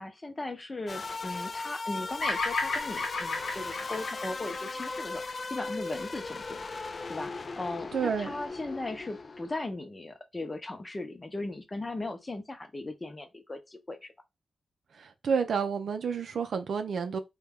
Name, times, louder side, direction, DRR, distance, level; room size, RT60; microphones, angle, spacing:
voice 1, 0.0-6.7 7.1-14.1, left 2 dB, 30° left, 0.7 m, -38 dB
sound 1, 0.9-9.7, left 3 dB, 45° left, 0.3 m, -38 dB
Bird vocalization bird call bird song, 2.2-6.5, left 3 dB, 70° left, 0.9 m, -34 dB
voice 2, 7.9-8.3 14.9-17.2, right 6 dB, 75° right, 0.5 m, -30 dB
3.0 x 2.3 x 3.5 m
cardioid pair, 75°, 0 cm